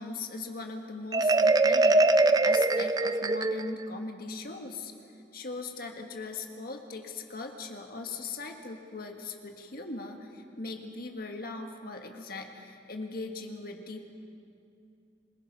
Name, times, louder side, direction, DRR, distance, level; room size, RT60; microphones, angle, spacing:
voice 1, 0.0-4.9 5.3-14.1, left 3 dB, 55° left, 4 dB, 1.7 m, -40 dB
Marimba xylophone, 1.1-3.9, right 2 dB, 20° right, 0.4 m, -23 dB
26.5 x 19.5 x 5.5 m, 2.6 s
head